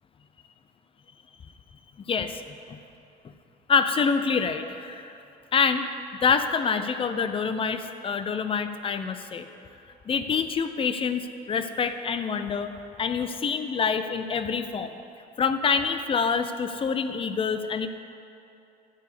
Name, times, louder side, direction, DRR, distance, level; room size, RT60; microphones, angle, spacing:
voice 1, 2.1-2.4 2.7-2.8 3.7-5.2 5.5-5.9 6.2-9.5 10.1-12.7 13.0-14.9 15.4-17.9, left 5 dB, 35° left, 9 dB, 0.6 m, -26 dB
12.0 x 4.7 x 8.3 m, 2.7 s
cardioid pair, 110°, 17 cm